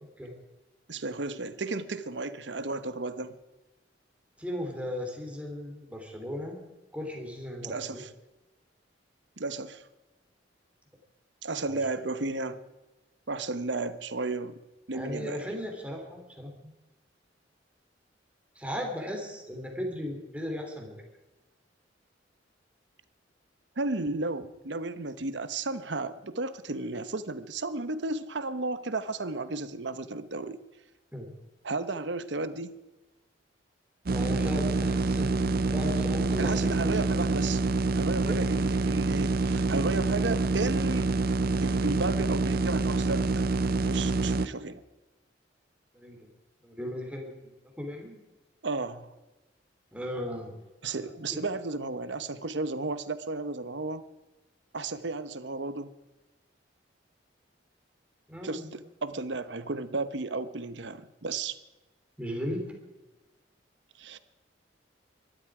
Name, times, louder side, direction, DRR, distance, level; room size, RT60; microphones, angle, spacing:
voice 1, 0.9-3.4 7.6-8.1 9.4-9.8 11.4-12.6 13.3-14.6 14.9-15.4 23.8-30.6 31.6-32.8 36.4-37.6 37.9-41.2 41.6-43.5 43.8-44.8 48.6-49.1 50.8-54.0 54.7-55.9 58.4-61.6 64.0-64.2, right 3 dB, 70° right, 12 dB, 1.0 m, -33 dB
voice 2, 4.4-6.6 6.9-8.0 11.7-11.8 14.9-16.7 18.5-21.0 31.1-31.3 34.1-37.3 38.2-38.4 45.9-46.2 46.6-47.4 47.8-48.2 49.9-50.6 51.3-51.4 58.3-58.7 62.2-62.7, left 1 dB, 5° right, 1 dB, 3.3 m, -36 dB
sound 1, 34.1-44.5, right 3 dB, 55° right, 0.5 m, -26 dB
23.0 x 12.5 x 4.9 m, 1.1 s
head